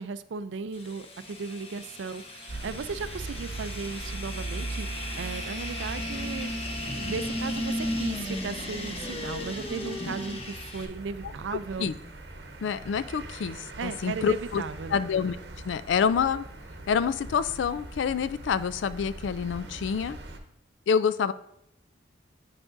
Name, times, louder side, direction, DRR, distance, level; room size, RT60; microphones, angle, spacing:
voice 1, 0.0-6.5 7.0-11.9 13.8-15.0, right 5 dB, 80° right, 13 dB, 0.4 m, -36 dB
sound 1, 0.7-10.8, left 1 dB, 35° left, 0.9 m, -35 dB
sound 2, 2.5-20.4, right 2 dB, 65° right, 0.9 m, -41 dB
voice 2, 12.6-14.6 14.9-15.4 15.6-16.5 16.9-20.2 20.9-21.3, left 6 dB, 80° left, 14 dB, 0.3 m, -27 dB
9.1 x 6.0 x 2.6 m, 0.79 s
head